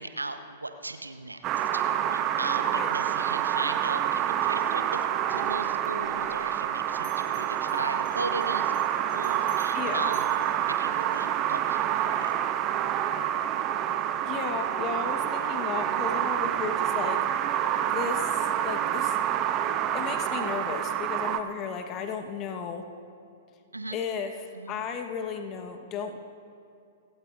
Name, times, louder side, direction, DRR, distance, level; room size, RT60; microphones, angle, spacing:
voice 1, 0.0-1.8 2.1-8.7 9.1-10.3 10.6-12.4 23.7-24.0 24.5-24.9, right 2 dB, 85° right, 8 dB, 0.9 m, -37 dB
sound 1, 1.4-21.4, right 10 dB, 30° right, 0.8 m, -27 dB
Bell, 5.3-6.7 6.9-11.4, left 3 dB, 60° left, 3.7 m, -53 dB
voice 2, 9.7-10.1 14.3-17.2 17.8-19.2 19.9-22.8 23.9-26.2, left 6 dB, 30° left, 5 dB, 1.5 m, -34 dB
28.0 x 17.5 x 2.7 m, 2.5 s
figure-of-eight pair, 105°, 0 cm